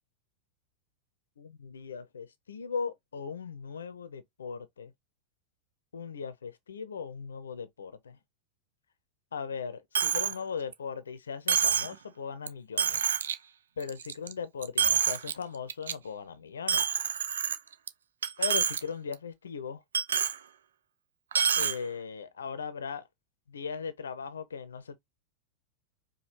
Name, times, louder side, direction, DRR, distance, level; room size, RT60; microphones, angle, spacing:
voice 1, 1.4-4.9 5.9-8.2 9.3-13.1 13.8-17.0 18.4-19.8 21.6-23.0 23.5-25.0, left 6 dB, 70° left, 0.7 m, -38 dB
Coin (dropping), 9.9-10.4 10.7-10.8 11.5-11.9 12.5-12.6 12.8-13.3 13.8-14.3 14.6-15.3 15.7-15.9 16.7-17.9 18.2-18.8 19.1-19.2 19.9-20.4 21.3-21.8, right 7 dB, 65° right, 0.4 m, -27 dB
5.1 x 2.3 x 2.9 m
figure-of-eight pair, 90°, 0 cm